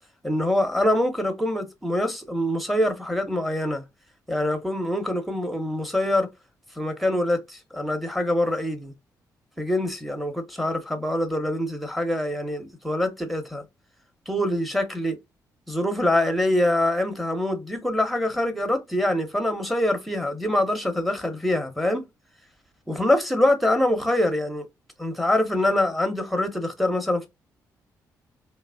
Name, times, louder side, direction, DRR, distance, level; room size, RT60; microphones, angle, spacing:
voice 1, 0.2-3.8 4.3-6.3 6.8-8.9 9.6-13.6 14.3-15.2 15.7-22.0 22.9-24.7 25.0-27.3, left 1 dB, ahead, 0.9 m, -24 dB
3.1 x 2.1 x 2.3 m
figure-of-eight pair, 40°, 10 cm